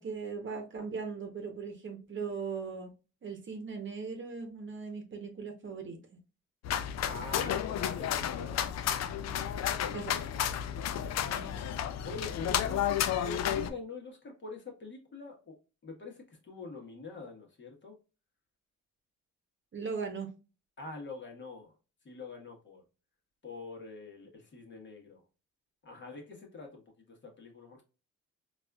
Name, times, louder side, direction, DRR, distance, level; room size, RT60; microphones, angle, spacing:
voice 1, 0.0-2.9 3.2-6.0 9.9-10.2 19.7-20.3, right 5 dB, 40° right, 0.9 m, -38 dB
sound 1, 6.6-13.7, left 10 dB, 60° left, 0.5 m, -32 dB
voice 2, 7.0-8.8 11.2-11.7 12.0-15.6 15.8-17.9 20.8-21.7 22.0-22.8 23.4-25.2 25.8-26.8 27.1-27.8, left 3 dB, 40° left, 1.2 m, -45 dB
4.1 x 2.5 x 2.3 m
cardioid pair, 90°, 30 cm